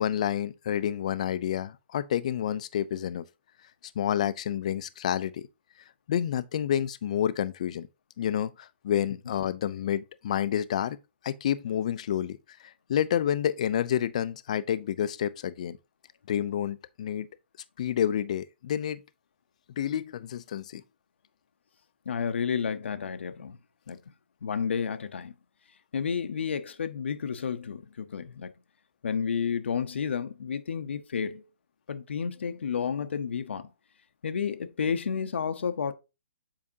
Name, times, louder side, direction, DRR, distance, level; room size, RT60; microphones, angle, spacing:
voice 1, 0.0-3.2 4.0-5.5 6.1-7.9 8.2-11.0 11.2-12.4 12.6-15.8 16.3-17.3 17.8-19.0 19.8-20.8, left 10 dB, 35° left, 0.3 m, -29 dB
voice 2, 22.1-23.6 23.9-24.0 24.4-25.3 25.9-28.5 29.0-31.4 31.9-33.7 34.2-35.9, left 6 dB, 85° left, 0.6 m, -31 dB
7.3 x 4.7 x 2.7 m
hypercardioid pair, 175°, 6 cm